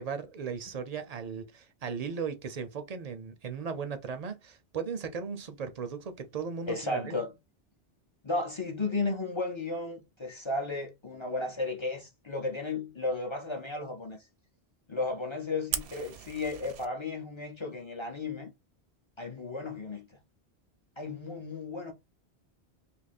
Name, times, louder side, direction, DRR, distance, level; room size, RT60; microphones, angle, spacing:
voice 1, 0.0-7.1, right 6 dB, 50° right, 0.5 m, -37 dB
voice 2, 6.7-7.3 8.2-14.2 14.9-18.5 19.2-20.1 21.0-21.9, left 3 dB, 35° left, 0.5 m, -34 dB
Fire, 15.7-16.9, right 9 dB, 80° right, 0.8 m, -37 dB
2.7 x 2.5 x 4.1 m
omnidirectional pair, 1.1 m